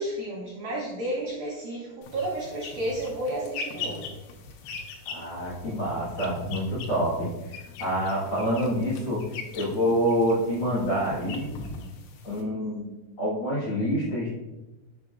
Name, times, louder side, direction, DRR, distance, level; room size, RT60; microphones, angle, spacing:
voice 1, 0.0-4.1, right 1 dB, 80° right, -4 dB, 2.0 m, -32 dB
sound 1, 2.0-12.4, left 3 dB, 90° left, 3.4 m, -40 dB
voice 2, 5.0-11.5 12.2-12.9 13.2-14.3, equal, 70° left, -9 dB, 1.4 m, -27 dB
7.3 x 5.3 x 2.5 m, 1.1 s
omnidirectional pair, 5.7 m